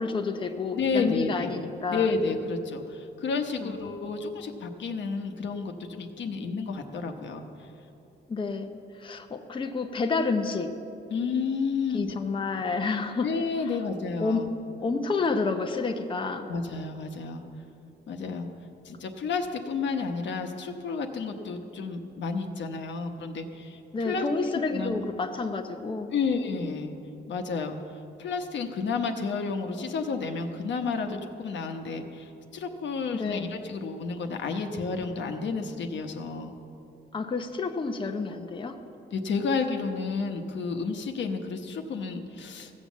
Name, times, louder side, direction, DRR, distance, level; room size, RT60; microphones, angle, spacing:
voice 1, 0.0-2.1 3.6-3.7 8.3-8.7 8.9-10.7 11.9-13.3 13.6-13.8 14.2-14.4 14.8-16.5 23.9-26.1 33.1-33.5 37.1-38.8, left 4 dB, 25° left, 5 dB, 0.6 m, -29 dB
voice 2, 0.7-1.5 1.9-7.4 11.1-12.1 13.2-14.5 16.5-17.4 18.1-18.5 18.8-23.8 24.0-24.3 24.7-25.0 26.1-26.9 27.3-27.8 28.2-36.5 39.1-42.7, left 4 dB, 80° left, 5 dB, 1.0 m, -31 dB
15.5 x 7.5 x 7.2 m, 2.8 s
wide cardioid pair, 130°, 19 cm